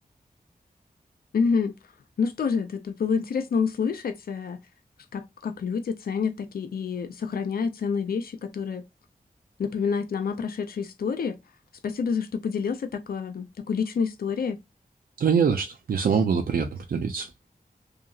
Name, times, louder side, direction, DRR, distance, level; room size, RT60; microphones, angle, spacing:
voice 1, 1.3-1.7 2.2-4.6 5.1-8.8 9.6-11.4 11.8-14.6, left 5 dB, 80° left, 0.4 m, -28 dB
voice 2, 15.2-17.3, right 6 dB, 80° right, 0.4 m, -24 dB
2.8 x 2.5 x 2.3 m
wide cardioid pair, 95°, 15 cm